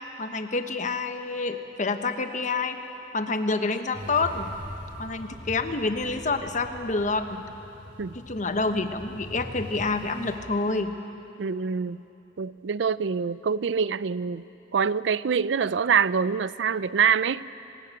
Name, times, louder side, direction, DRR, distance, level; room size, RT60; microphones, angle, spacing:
voice 1, 0.2-2.8 3.1-4.5 5.0-7.4 8.1-11.0, left 3 dB, 45° left, 8 dB, 1.1 m, -28 dB
sound 1, 3.9-10.4, left 1 dB, 25° left, 7.2 m, -42 dB
voice 2, 11.4-12.0 12.4-14.4 14.7-17.5, right 6 dB, 75° right, 17 dB, 0.5 m, -25 dB
25.5 x 14.0 x 8.8 m, 2.9 s
head